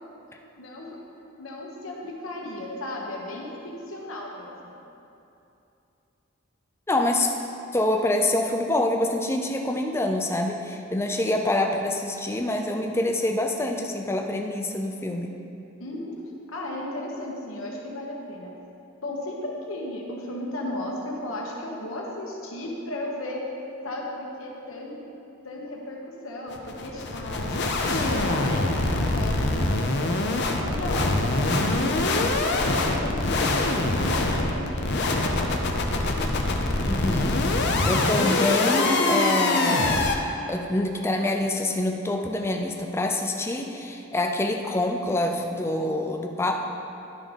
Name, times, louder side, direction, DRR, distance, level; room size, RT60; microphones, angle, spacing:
voice 1, 0.6-1.0 1.4-4.8 15.8-16.1 16.5-18.5 19.0-23.5 23.8-25.0 25.4-27.6 27.9-30.2 30.6-36.0, left 1 dB, 75° left, -2 dB, 1.3 m, -35 dB
voice 2, 6.9-7.3 7.7-15.3 36.9-37.3 37.6-40.1 40.5-46.6, left 1 dB, 10° left, 2 dB, 0.4 m, -26 dB
sound 1, 26.5-40.2, left 2 dB, 50° left, 0.6 m, -24 dB
11.0 x 3.8 x 5.2 m, 2.8 s
head